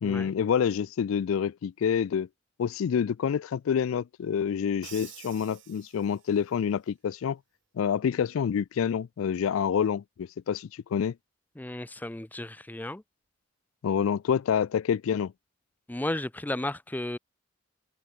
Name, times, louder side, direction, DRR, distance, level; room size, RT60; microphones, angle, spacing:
voice 1, 0.0-2.3 2.6-7.4 7.8-11.1 13.8-15.3, left 7 dB, 80° left, 0.4 m, -27 dB
Crash cymbal, 4.8-6.6, right 14 dB, 60° right, 0.9 m, -49 dB
voice 2, 11.6-13.0 15.9-17.2, left 1 dB, 10° left, 0.5 m, -34 dB
head